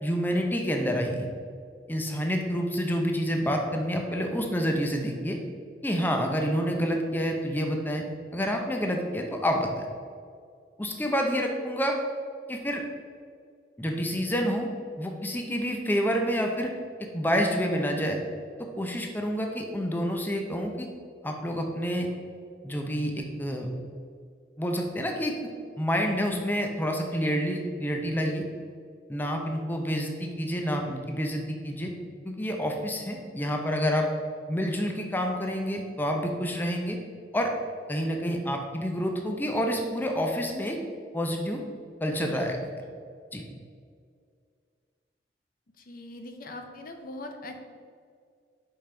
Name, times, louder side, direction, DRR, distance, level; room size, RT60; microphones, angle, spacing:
voice 1, 0.0-1.3 1.9-5.4 5.8-8.0 8.3-9.7 10.8-12.0 12.5-12.8 13.8-14.7 15.0-16.7 17.1-18.2 18.6-20.9 21.2-22.1 22.6-23.7 24.6-25.3 25.8-28.5 29.1-31.9 32.2-34.1 34.5-37.0 37.3-37.5 37.9-40.8 41.1-41.6 42.0-42.7 43.3-43.4, equal, 10° left, 2 dB, 0.6 m, -28 dB
voice 2, 45.8-47.7, left 1 dB, 50° left, 5 dB, 0.6 m, -41 dB
5.4 x 5.2 x 4.4 m, 2.1 s
head